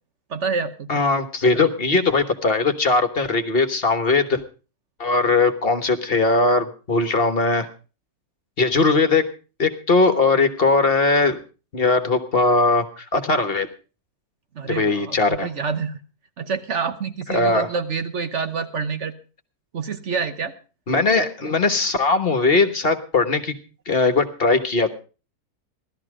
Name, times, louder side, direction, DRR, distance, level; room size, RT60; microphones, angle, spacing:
voice 1, 0.3-1.0 14.5-16.0 16.4-19.1 19.7-20.5, right 5 dB, 50° right, 9 dB, 1.2 m, -27 dB
voice 2, 0.9-4.4 5.0-7.7 8.6-9.2 9.6-11.4 11.7-13.7 14.6-15.5 17.3-17.7 20.9-23.5 23.9-24.9, left 3 dB, 40° left, 9 dB, 1.4 m, -19 dB
16.5 x 13.0 x 4.8 m, 0.35 s
omnidirectional pair, 1.6 m